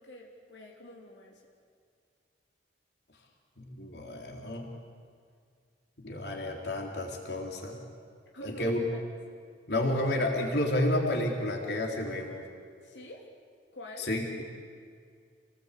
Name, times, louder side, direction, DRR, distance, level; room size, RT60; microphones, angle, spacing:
voice 1, 0.0-1.4 8.3-9.0 12.8-13.3 13.7-14.1, equal, 90° left, -1 dB, 3.4 m, -46 dB
voice 2, 3.6-4.7 6.0-7.8 8.4-8.8 9.7-12.4 14.0-14.5, left 1 dB, 65° left, 0 dB, 3.8 m, -31 dB
29.0 x 19.5 x 8.5 m, 2.2 s
head